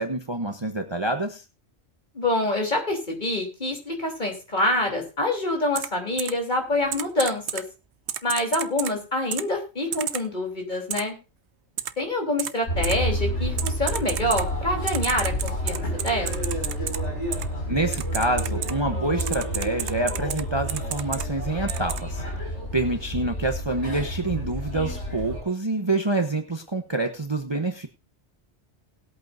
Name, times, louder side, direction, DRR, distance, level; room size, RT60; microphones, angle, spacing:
voice 1, 0.0-1.4 17.7-22.2 22.7-27.9, right 2 dB, 25° right, 5 dB, 1.0 m, -27 dB
voice 2, 2.1-7.6 8.2-11.2 12.0-16.5, left 1 dB, 40° left, 1 dB, 3.4 m, -26 dB
Typing, 5.7-5.9 6.2-6.3 6.9-7.6 8.1-8.9 9.3-9.4 9.9-10.2 10.9-11.0 11.8-11.9 12.4-12.5 12.8-12.9 13.6-14.4 14.9-17.0 17.3-17.4 17.9-18.7 19.2-20.4 20.7-21.2 21.7-22.0, right 9 dB, 75° right, 1.0 m, -30 dB
sound 1, 12.7-25.4, equal, 80° left, 6.3 m, -30 dB
19.5 x 8.4 x 2.6 m, 0.30 s
omnidirectional pair, 1.2 m